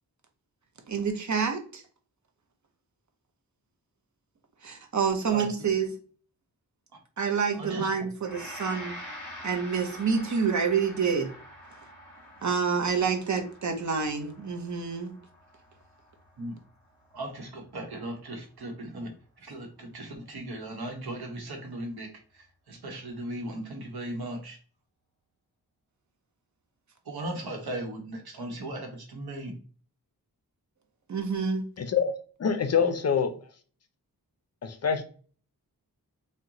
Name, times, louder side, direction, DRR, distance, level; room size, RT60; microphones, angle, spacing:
voice 1, 0.9-1.8 4.6-5.9 7.2-8.9 9.4-11.3 12.4-15.1 31.1-31.7, right 6 dB, 50° right, 0.7 m, -28 dB
voice 2, 7.5-8.1 16.4-16.6 17.1-24.6 27.0-29.5, right 1 dB, 85° right, 0.9 m, -37 dB
Gong, 8.2-17.4, left 1 dB, 5° left, 1.6 m, -46 dB
voice 3, 31.8-32.1 32.4-33.5 34.6-35.0, left 6 dB, 45° left, 0.4 m, -26 dB
2.9 x 2.1 x 3.6 m
wide cardioid pair, 120°, 37 cm